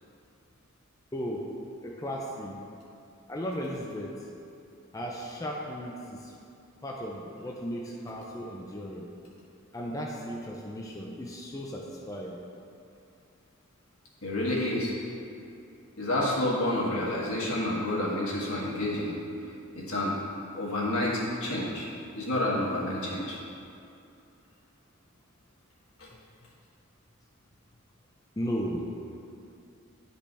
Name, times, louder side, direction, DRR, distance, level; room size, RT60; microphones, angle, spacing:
voice 1, 1.1-1.5 1.8-2.6 3.3-4.2 4.9-6.3 6.8-9.1 9.7-12.3 28.4-28.8, equal, 15° left, -2 dB, 0.5 m, -35 dB
voice 2, 14.2-14.9 16.0-19.2 19.7-20.2 20.5-21.9 22.1-23.4 26.0-26.1, left 1 dB, 75° left, -5 dB, 1.7 m, -29 dB
10.5 x 5.2 x 3.3 m, 2.6 s
head